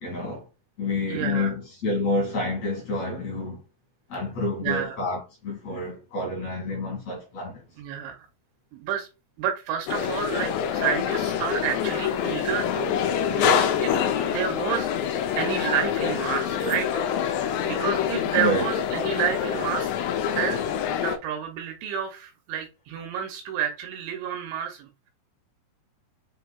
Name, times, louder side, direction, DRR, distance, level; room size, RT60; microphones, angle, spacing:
voice 1, 0.0-0.5 0.8-3.6 4.1-7.6 18.4-18.7, left 2 dB, 60° left, 1.8 m, -28 dB
voice 2, 1.1-1.5 4.6-5.0 5.7-5.8 7.8-8.2 8.7-9.1 9.4-13.0 13.3-14.9 15.4-19.9 20.3-20.6 20.9-25.1, right 9 dB, 85° right, 2.7 m, -30 dB
sound 1, 9.9-21.2, left 8 dB, 85° left, 2.4 m, -26 dB
7.6 x 2.9 x 2.2 m
omnidirectional pair, 5.7 m